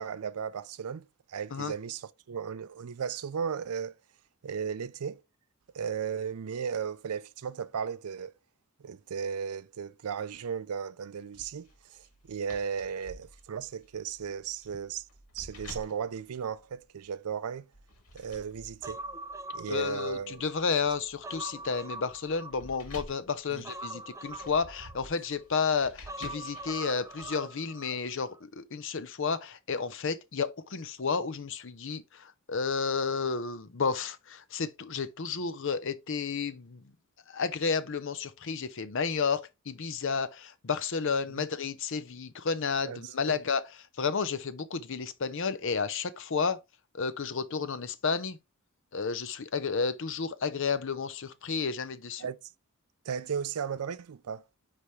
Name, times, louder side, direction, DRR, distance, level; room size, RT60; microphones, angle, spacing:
voice 1, 0.0-4.0 4.4-5.2 5.7-8.3 8.8-15.0 15.3-17.7 18.1-19.0 19.5-20.4 23.5-23.6 41.3-41.4 42.8-43.4 52.2-52.4 53.1-54.4, right 7 dB, 85° right, 0.5 m, -35 dB
sound 1, 11.3-17.2 17.7-27.3, left 1 dB, 80° left, 2.5 m, -51 dB
Human voice, 18.8-20.6 21.0-23.0 23.6-25.4 26.1-28.0 28.3-28.4, right 2 dB, 15° right, 0.4 m, -42 dB
voice 2, 19.7-36.8 37.3-43.6 44.0-46.6 46.9-48.4 48.9-52.3, left 5 dB, 60° left, 0.7 m, -31 dB
9.8 x 3.5 x 3.2 m
head